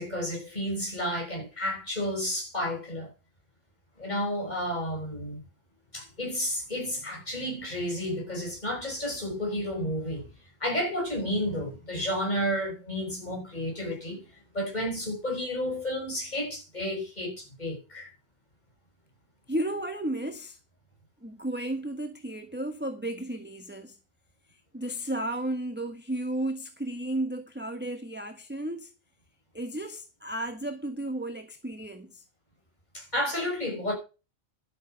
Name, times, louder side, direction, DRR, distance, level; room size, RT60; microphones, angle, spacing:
voice 1, 0.0-3.1 4.0-5.4 5.9-10.3 10.6-18.1 32.9-33.9, equal, 30° left, 6.0 m, -31 dB
voice 2, 19.5-20.6 21.2-24.0 24.7-28.9 29.5-32.2, right 1 dB, 10° right, 1.2 m, -33 dB
12.0 x 8.6 x 6.4 m
omnidirectional pair, 1.5 m